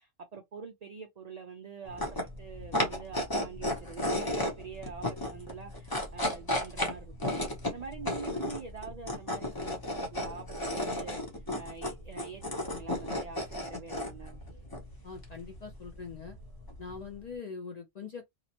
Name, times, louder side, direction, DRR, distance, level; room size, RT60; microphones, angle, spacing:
voice 1, 0.0-2.0 2.4-11.2 11.6-14.4, right 5 dB, 70° right, 0.3 m, -45 dB
sound 1, 1.9-17.2, left 1 dB, 20° left, 0.7 m, -35 dB
voice 2, 15.0-16.4 16.8-18.3, left 5 dB, 60° left, 0.4 m, -42 dB
2.8 x 2.0 x 2.7 m
omnidirectional pair, 1.2 m